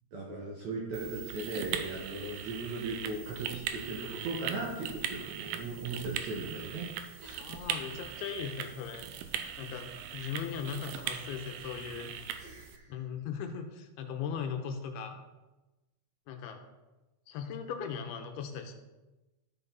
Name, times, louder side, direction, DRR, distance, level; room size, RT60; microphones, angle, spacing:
voice 1, 0.1-6.9 7.2-7.4 12.4-12.9, right 2 dB, 60° right, -3 dB, 2.0 m, -38 dB
sound 1, 0.9-12.8, right 9 dB, 80° right, 2.3 m, -40 dB
voice 2, 7.4-9.1 9.6-12.1 12.9-15.2 16.3-16.6 17.3-18.7, left 7 dB, 80° left, 5 dB, 2.7 m, -38 dB
13.0 x 5.9 x 4.0 m, 1.1 s
omnidirectional pair, 4.7 m